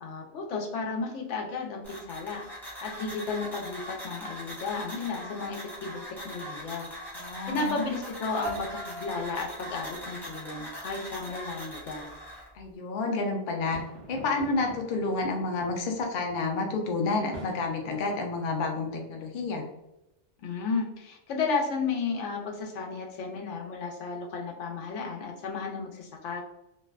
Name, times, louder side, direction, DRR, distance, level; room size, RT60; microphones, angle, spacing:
voice 1, 0.0-6.9 7.5-12.1 20.4-26.4, left 4 dB, 90° left, 1 dB, 0.9 m, -33 dB
sound 1, 1.8-12.5, equal, 5° left, 0.4 m, -41 dB
voice 2, 7.1-7.8 12.5-13.8 14.1-19.7, left 3 dB, 60° left, 2 dB, 0.6 m, -30 dB
sound 2, 8.4-11.4, right 1 dB, 60° right, 0.7 m, -42 dB
sound 3, 13.6-18.9, right 2 dB, 85° right, 0.9 m, -47 dB
2.5 x 2.1 x 2.3 m, 0.90 s
omnidirectional pair, 1.2 m